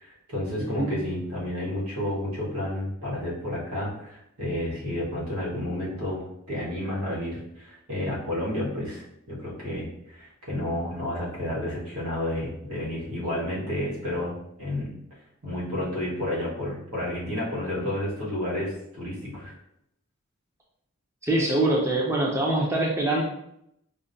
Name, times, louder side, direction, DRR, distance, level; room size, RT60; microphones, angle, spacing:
voice 1, 0.0-6.2 6.5-14.9 15.4-19.5, left 1 dB, 90° right, -6 dB, 1.4 m, -31 dB
voice 2, 0.6-1.0 21.2-23.2, right 2 dB, 10° right, -3 dB, 0.4 m, -24 dB
5.0 x 2.1 x 2.6 m, 0.78 s
head